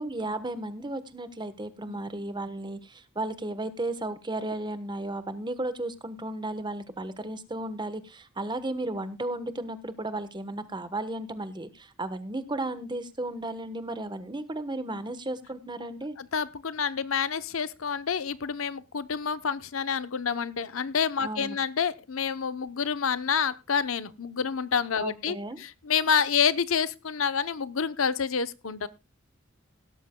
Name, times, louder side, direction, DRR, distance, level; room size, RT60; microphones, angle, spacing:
voice 1, 0.0-16.2 21.2-21.6 25.0-25.6, right 2 dB, 20° right, 12 dB, 1.1 m, -34 dB
voice 2, 16.2-28.9, left 6 dB, 80° left, 15 dB, 0.8 m, -28 dB
17.0 x 13.0 x 2.2 m, 0.26 s
head